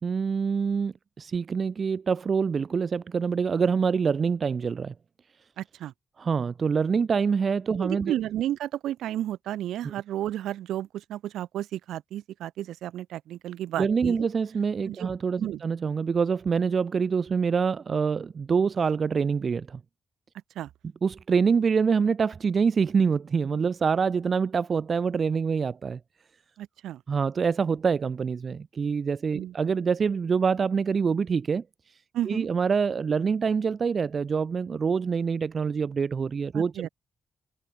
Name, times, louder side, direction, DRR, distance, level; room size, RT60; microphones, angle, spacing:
voice 1, 0.0-4.9 6.2-8.1 9.8-9.9 13.8-19.8 21.0-26.0 27.1-32.0 32.2-36.9, right 5 dB, 55° right, 1.6 m, -25 dB
voice 2, 5.6-5.9 7.7-14.1 14.9-15.1 15.4-15.6 20.5-20.7 26.6-27.0 29.3-29.5 32.1-32.5 36.5-36.9, right 12 dB, 80° right, 4.6 m, -32 dB
supercardioid pair, 45°, 0 cm